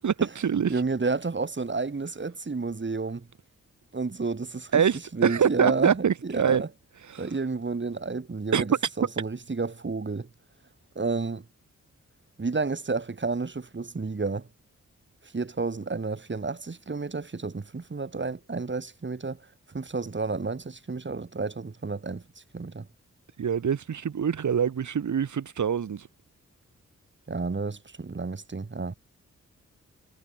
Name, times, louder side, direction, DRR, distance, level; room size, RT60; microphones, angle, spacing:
voice 1, 0.0-0.8 4.7-6.6 7.1-7.3 8.5-8.6 23.4-26.1, right 7 dB, 75° right, 7.1 m, -25 dB
voice 2, 0.7-3.3 3.9-4.8 5.1-6.7 7.2-10.3 11.0-11.5 12.4-14.5 15.2-19.5 19.7-22.2 22.5-22.9 27.3-28.9, right 4 dB, 40° right, 5.4 m, -31 dB
cardioid pair, 60°, 30 cm